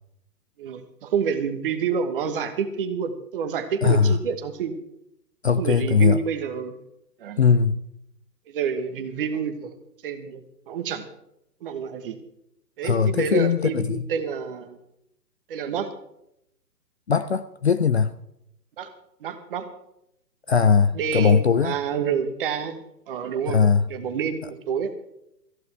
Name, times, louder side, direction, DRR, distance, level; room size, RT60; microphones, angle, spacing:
voice 1, 0.6-4.8 5.6-6.8 7.2-7.4 8.5-9.7 10.0-10.4 10.7-11.0 11.6-12.2 12.8-14.8 15.5-15.9 18.8-18.9 19.2-19.7 20.9-22.8 23.1-23.6 23.9-24.9, right 7 dB, 35° right, 1.3 m, -28 dB
voice 2, 3.8-4.1 5.4-6.2 7.4-7.8 12.8-14.1 17.1-18.1 20.5-21.8 23.5-23.9, left 6 dB, 45° left, 0.5 m, -20 dB
17.5 x 14.5 x 3.4 m
figure-of-eight pair, 135°, 49 cm